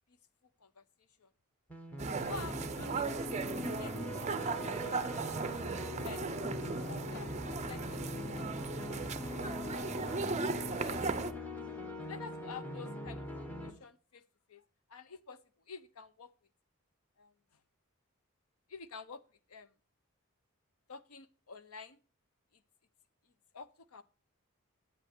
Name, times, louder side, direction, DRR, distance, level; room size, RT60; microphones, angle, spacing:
sound 1, 1.7-13.7, left 1 dB, 5° left, 1.1 m, -42 dB
sound 2, 2.0-11.3, right 4 dB, 30° right, 0.5 m, -37 dB
voice 1, 2.2-3.4 3.7-3.9 4.2-5.2 6.0-6.4 6.9-7.3 7.7-8.5 8.8-9.4 10.6-11.0 12.0-14.2 14.5-14.6 14.9-15.4 15.7-16.3 17.2-17.3 18.7-19.2 19.5-19.7 20.9-22.0 23.5-24.0, left 5 dB, 80° left, 13 dB, 0.7 m, -49 dB
8.8 x 7.9 x 4.4 m, 0.36 s
head